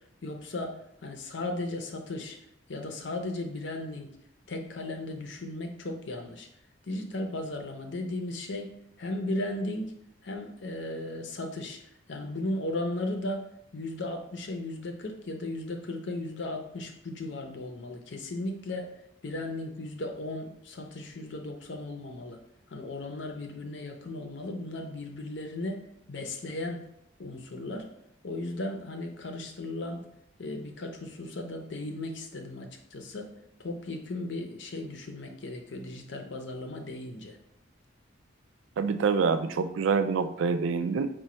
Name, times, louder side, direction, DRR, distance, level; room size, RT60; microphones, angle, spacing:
voice 1, 0.2-2.4 2.7-4.1 4.5-6.5 6.8-9.9 10.2-18.9 19.2-22.4 22.7-26.9 27.2-27.9 28.2-30.0 30.4-33.3 33.6-37.4, left 2 dB, 60° left, 4 dB, 0.6 m, -36 dB
voice 2, 38.8-41.1, right 5 dB, 70° right, 10 dB, 0.4 m, -26 dB
4.8 x 2.2 x 4.3 m, 0.75 s
head